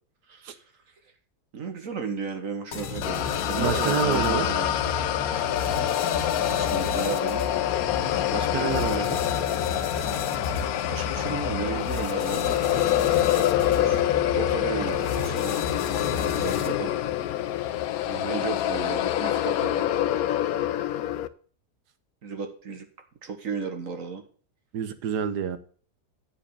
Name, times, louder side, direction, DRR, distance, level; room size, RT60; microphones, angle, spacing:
voice 1, 0.3-0.6 1.5-4.8 6.5-7.5 10.7-12.6 13.7-14.0 14.3-15.6 16.4-16.9 17.6-20.0 22.2-22.9 23.2-24.2, right 5 dB, 55° right, 6 dB, 1.5 m, -34 dB
sound 1, 2.7-16.9, left 4 dB, 90° left, 1.7 m, -33 dB
sound 2, 3.0-21.3, left 12 dB, 70° left, 1.0 m, -26 dB
voice 2, 3.6-4.5 8.3-9.2 18.1-18.4 24.7-25.6, right 8 dB, 85° right, 11 dB, 1.5 m, -28 dB
8.6 x 5.0 x 6.7 m, 0.43 s
omnidirectional pair, 1.7 m